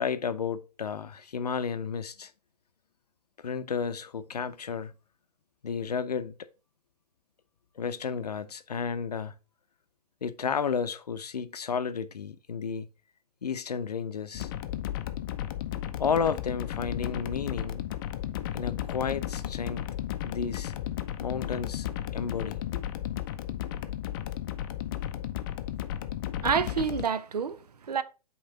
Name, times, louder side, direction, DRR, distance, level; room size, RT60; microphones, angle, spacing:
voice 1, 0.0-2.3 3.4-4.9 5.6-6.4 7.8-9.3 10.2-12.9 13.4-14.5 16.0-17.8 18.5-19.9 20.2-20.7 21.2-21.9 22.1-22.8, left 6 dB, 75° left, 0.6 m, -32 dB
sound 1, 14.3-27.0, left 12 dB, 35° left, 0.5 m, -34 dB
voice 2, 26.4-28.0, right 7 dB, 75° right, 0.6 m, -28 dB
8.0 x 3.1 x 4.0 m
figure-of-eight pair, 120°, 20 cm